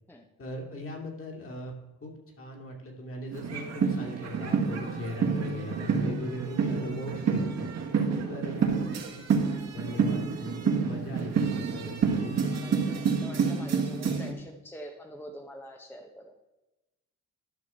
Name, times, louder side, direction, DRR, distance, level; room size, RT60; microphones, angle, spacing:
voice 1, 0.4-1.7 2.0-7.8 8.3-9.4 9.7-12.4, left 1 dB, 45° left, 0 dB, 2.6 m, -39 dB
sound 1, 3.3-14.3, right 6 dB, 60° right, 1.7 m, -28 dB
voice 2, 12.5-16.3, right 1 dB, 5° left, 3 dB, 0.8 m, -45 dB
12.0 x 5.8 x 4.4 m, 1.0 s
cardioid pair, 90°, 30 cm